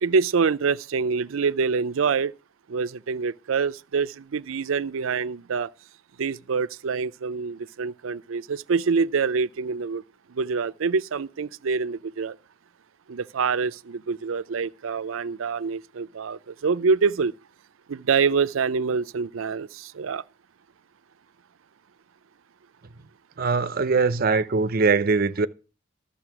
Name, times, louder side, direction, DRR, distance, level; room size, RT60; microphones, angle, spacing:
voice 1, 0.0-2.3 2.7-5.7 6.2-10.0 10.3-12.4 13.1-17.3 17.9-20.2, right 5 dB, 90° right, 0.5 m, -26 dB
voice 2, 23.4-25.5, right 4 dB, 50° right, 0.6 m, -22 dB
12.5 x 7.1 x 5.9 m
head